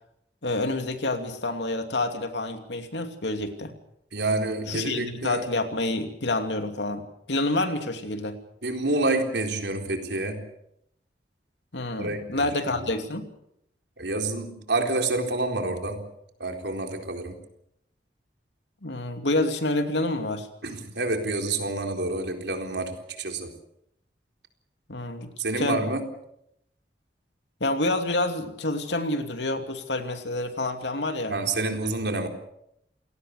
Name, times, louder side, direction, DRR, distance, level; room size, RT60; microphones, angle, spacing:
voice 1, 0.4-3.7 4.7-8.4 11.7-13.3 18.8-20.5 24.9-25.3 25.6-25.9 27.6-31.4, left 2 dB, 80° left, 6 dB, 2.7 m, -28 dB
voice 2, 4.1-5.4 8.6-10.4 12.0-12.9 14.0-16.1 16.4-17.4 20.6-23.5 25.4-26.0 31.3-32.3, right 2 dB, 75° right, 4 dB, 4.1 m, -28 dB
28.0 x 18.5 x 6.7 m, 0.77 s
head